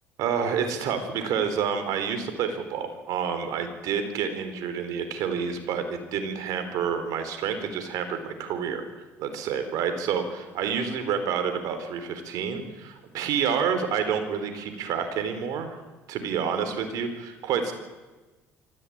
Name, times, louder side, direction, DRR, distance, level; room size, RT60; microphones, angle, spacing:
voice 1, 0.2-8.9 9.2-15.8 16.1-17.7, right 7 dB, 70° right, 8 dB, 4.2 m, -28 dB
24.0 x 15.5 x 8.9 m, 1.2 s
hypercardioid pair, 70°, 6 cm